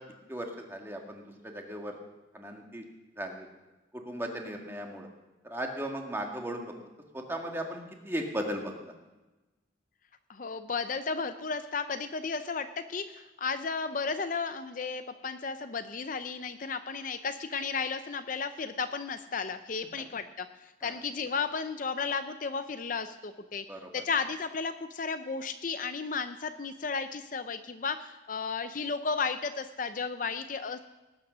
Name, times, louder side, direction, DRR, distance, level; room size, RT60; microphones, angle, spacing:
voice 1, 0.3-2.0 2.3-2.8 3.2-3.5 3.9-5.1 5.4-6.7 7.1-8.7 20.8-21.0 23.7-24.0, right 1 dB, 10° right, 1 dB, 1.8 m, -37 dB
voice 2, 10.3-23.6 23.9-30.8, left 5 dB, 45° left, 9 dB, 0.5 m, -34 dB
18.5 x 9.0 x 6.2 m, 1.1 s
head